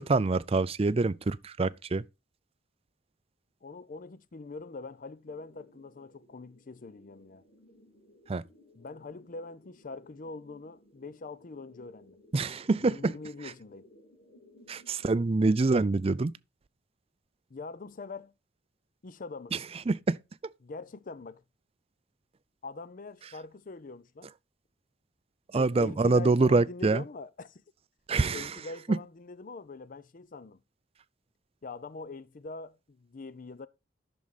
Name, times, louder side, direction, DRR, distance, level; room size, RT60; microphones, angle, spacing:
voice 1, 0.0-2.0 8.3-8.4 12.3-13.1 13.4-13.5 14.7-16.3 19.5-19.6 19.9-20.2 25.5-27.0 28.1-28.6 28.9-29.0, right 3 dB, 30° right, 0.4 m, -25 dB
voice 2, 3.6-7.4 8.8-12.2 12.8-13.9 17.5-18.3 19.0-19.6 20.6-21.4 22.6-24.3 25.5-27.6 28.3-30.6 31.6-33.7, left 3 dB, 45° left, 0.5 m, -43 dB
sound 1, 5.2-15.2, left 1 dB, 70° left, 2.7 m, -60 dB
10.5 x 6.3 x 4.1 m
head